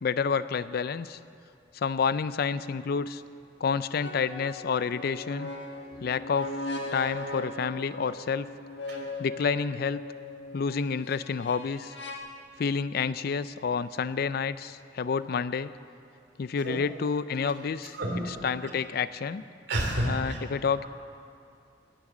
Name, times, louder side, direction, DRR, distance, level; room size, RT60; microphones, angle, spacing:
voice 1, 0.0-1.2 1.7-3.2 3.6-5.5 6.0-6.5 6.9-8.5 9.2-10.0 10.5-11.9 12.6-15.7 16.4-19.5 20.1-20.9, left 5 dB, 55° left, 15 dB, 0.4 m, -29 dB
sound 1, 2.7-2.9 4.0-12.2, left 2 dB, 75° left, 1.4 m, -39 dB
voice 2, 19.7-20.4, right 1 dB, 65° right, 1 dB, 2.9 m, -28 dB
19.5 x 8.8 x 7.2 m, 2.5 s
head